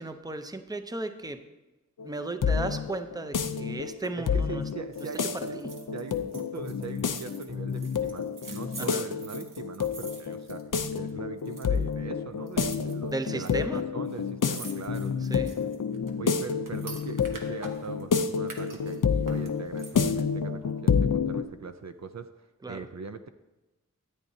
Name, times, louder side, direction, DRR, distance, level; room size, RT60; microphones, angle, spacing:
voice 1, 0.0-1.4 2.0-4.6 5.1-5.7 8.8-9.0 13.1-13.8 15.3-15.6 22.6-22.9, right 2 dB, 10° right, 8 dB, 0.6 m, -35 dB
sound 1, 2.0-21.4, left 6 dB, 75° left, 0.6 m, -29 dB
voice 2, 4.2-5.3 5.9-15.4 16.2-23.3, right 5 dB, 55° right, 9 dB, 0.5 m, -41 dB
sound 2, 4.9-11.1 11.4-11.9 12.5-13.5 13.8-13.9 14.1-18.0 18.4-20.2 20.6-20.7, right 3 dB, 80° right, 1.2 m, -47 dB
13.0 x 8.9 x 2.7 m, 1.0 s
wide cardioid pair, 65°, 32 cm